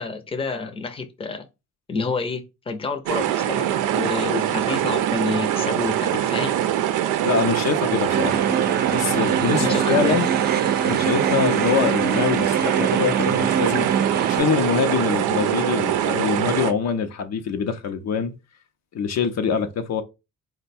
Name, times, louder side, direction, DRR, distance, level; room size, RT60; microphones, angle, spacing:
voice 1, 0.0-1.5 1.9-6.6 9.6-10.2, left 4 dB, 20° left, 0.7 m, -29 dB
sound 1, 3.1-16.7, right 11 dB, 85° right, 0.5 m, -23 dB
voice 2, 7.2-8.4 8.9-10.3 10.8-13.9 14.3-18.3 18.9-20.0, left 6 dB, 60° left, 0.7 m, -24 dB
sound 2, 8.1-14.4, right 6 dB, 35° right, 0.4 m, -25 dB
4.4 x 2.2 x 4.2 m
cardioid pair, 90°, 30 cm